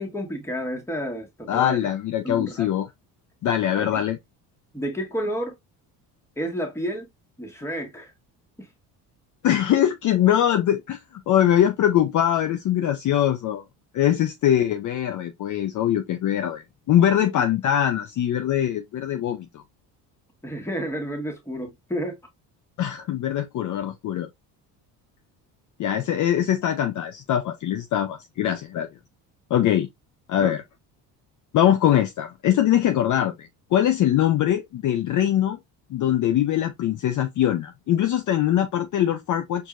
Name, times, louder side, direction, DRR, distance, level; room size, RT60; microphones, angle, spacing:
voice 1, 0.0-1.8 2.2-2.7 3.8-4.0 4.7-5.6 6.4-7.1 7.4-8.1 8.6-8.7 17.2-17.3 20.4-22.2 30.3-30.6, equal, 5° left, 1.4 m, -30 dB
voice 2, 1.5-2.9 3.4-4.2 9.4-13.6 13.9-19.6 22.8-24.3 25.8-28.9 29.5-29.9 30.3-30.6 31.5-35.6 35.9-39.7, left 11 dB, 45° left, 0.5 m, -22 dB
4.6 x 2.7 x 2.3 m
supercardioid pair, 85°, 42 cm